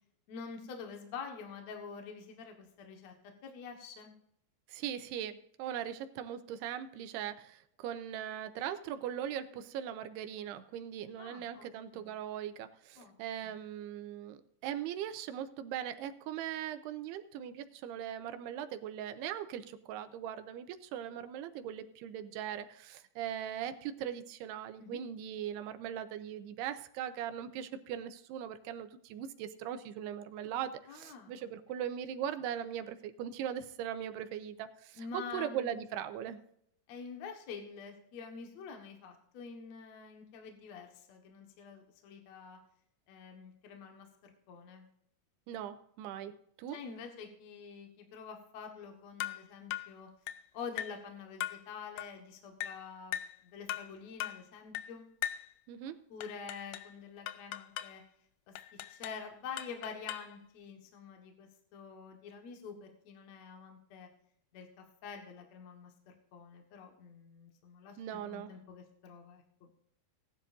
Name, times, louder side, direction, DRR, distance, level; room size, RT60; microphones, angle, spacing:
voice 1, 0.3-3.1 3.4-4.1 11.2-12.1 13.0-13.1 13.4-13.6 24.8-25.0 30.9-31.3 35.0-35.8 36.9-42.6 43.1-44.9 46.7-50.1 50.5-55.1 56.1-58.0 58.5-58.6 58.9-64.1 64.5-69.7, left 6 dB, 60° left, 3 dB, 2.0 m, -47 dB
voice 2, 4.7-36.4 45.5-46.3 46.6-46.8 55.7-56.0 68.0-68.5, right 10 dB, 80° right, 9 dB, 2.7 m, -40 dB
sound 1, 49.2-49.4 49.7-49.9 50.3-50.5 50.8-51.0 51.4-51.6 52.0-52.2 52.6-52.8 53.1-53.4 53.7-53.9 54.2-54.4 54.7-54.9 55.2-55.5 56.2-56.9 57.3-58.0 58.6-59.2 59.6-60.3, left 13 dB, 85° left, 2.0 m, -39 dB
18.5 x 11.0 x 2.6 m, 0.70 s
omnidirectional pair, 4.9 m